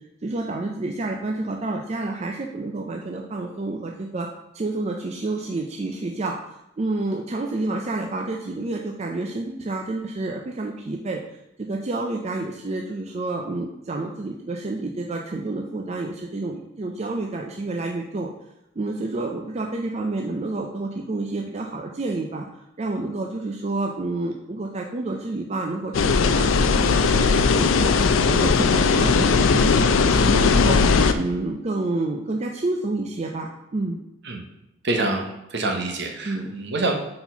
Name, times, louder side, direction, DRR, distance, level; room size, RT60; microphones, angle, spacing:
voice 1, 0.2-4.3 4.5-11.2 11.6-18.3 18.8-22.4 22.8-27.9 28.2-30.8 31.1-34.0 36.2-36.5, right 2 dB, 35° right, 1 dB, 0.4 m, -29 dB
sound 1, 25.9-31.1, left 4 dB, 85° left, 0.4 m, -18 dB
voice 2, 34.8-36.9, right 2 dB, 60° right, 3 dB, 1.0 m, -26 dB
4.4 x 4.3 x 5.5 m, 0.86 s
head